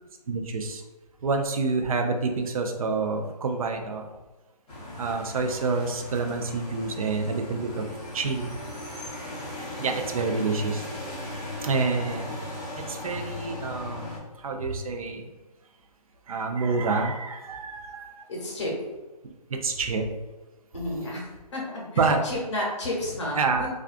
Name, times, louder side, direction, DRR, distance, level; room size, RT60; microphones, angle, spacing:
voice 1, 0.3-0.8 1.2-4.1 5.0-7.8 8.1-8.6 9.8-10.8 11.6-12.4 12.8-15.3 16.3-18.3 19.5-20.1 22.0-22.2 23.4-23.7, right 4 dB, 60° right, 4 dB, 0.4 m, -28 dB
sound 1, 4.7-14.2, left 1 dB, 10° left, 0.5 m, -37 dB
voice 2, 18.3-18.7 20.7-23.7, left 1 dB, 45° left, -3 dB, 0.9 m, -32 dB
2.4 x 2.3 x 2.4 m, 1.1 s
hypercardioid pair, 160°, 21 cm